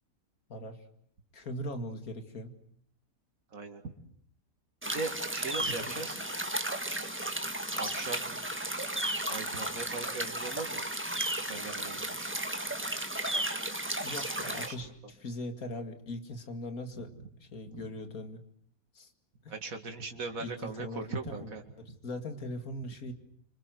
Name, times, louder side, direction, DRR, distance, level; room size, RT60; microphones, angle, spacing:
voice 1, 0.5-0.8 1.3-2.5 14.0-17.1 17.4-18.4 18.9-19.1 19.4-19.5 20.4-21.5 21.8-23.1, left 1 dB, 70° left, 7 dB, 2.6 m, -40 dB
voice 2, 3.5-3.9 4.9-6.2 7.7-8.2 9.3-10.9 11.4-12.3 14.5-14.8 15.0-15.1 17.0-17.1 17.7-17.9 19.5-21.6 21.9-22.0, right 3 dB, 65° right, 5 dB, 2.7 m, -39 dB
sound 1, 4.8-14.7, right 1 dB, 10° right, 1.5 m, -34 dB
26.0 x 25.5 x 7.7 m, 0.65 s
omnidirectional pair, 1.6 m